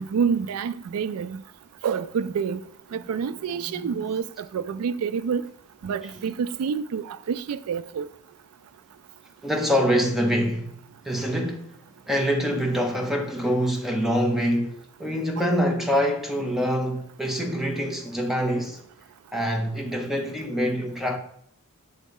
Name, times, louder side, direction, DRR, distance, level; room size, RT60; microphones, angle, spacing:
voice 1, 0.0-1.4 1.8-2.6 2.9-5.4 5.8-8.1 15.4-15.5, right 6 dB, 80° right, 0.3 m, -28 dB
voice 2, 3.7-4.0 9.4-10.7 11.0-11.7 12.1-18.8 19.3-21.2, equal, ahead, 0.8 m, -25 dB
8.0 x 3.1 x 5.3 m
head